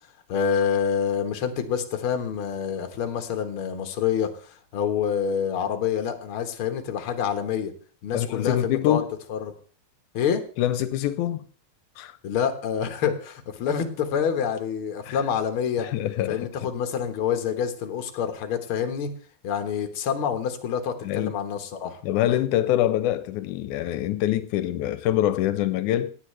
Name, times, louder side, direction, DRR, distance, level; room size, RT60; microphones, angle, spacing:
voice 1, 0.3-7.7 8.0-9.0 9.3-9.5 10.1-10.4 12.2-15.9 16.3-19.1 19.4-22.0, left 7 dB, 55° left, 1.9 m, -27 dB
voice 2, 8.1-9.1 10.6-11.5 12.0-12.2 15.1-15.2 15.8-16.7 21.0-21.4 22.0-26.1, left 12 dB, 85° left, 2.1 m, -25 dB
17.0 x 9.7 x 3.3 m
omnidirectional pair, 3.4 m